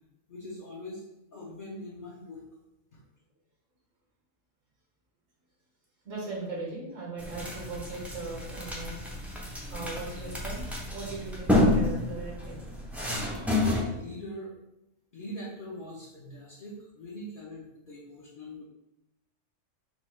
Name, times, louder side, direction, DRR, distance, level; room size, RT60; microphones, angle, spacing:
voice 1, 0.3-1.0 1.3-2.4 2.9-3.0 13.2-14.5 15.1-18.6, left 1 dB, 50° left, -5 dB, 0.9 m, -42 dB
voice 2, 6.0-9.0 9.7-12.6, right 3 dB, 85° right, -4 dB, 1.8 m, -39 dB
sound 1, 7.2-13.8, left 1 dB, ahead, 0.4 m, -29 dB
4.2 x 2.4 x 4.3 m, 0.90 s
omnidirectional pair, 1.3 m